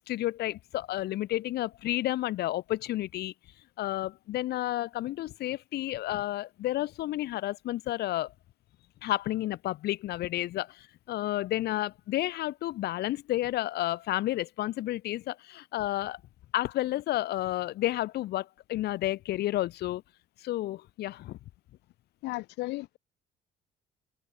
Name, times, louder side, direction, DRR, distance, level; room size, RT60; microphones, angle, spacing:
voice 1, 0.1-3.3 3.8-8.3 9.0-16.2 16.5-20.0 20.4-21.4, left 15 dB, 75° left, 2.3 m, -31 dB
voice 2, 22.2-23.0, left 20 dB, 90° left, 2.6 m, -35 dB
cardioid pair, 110°, 17 cm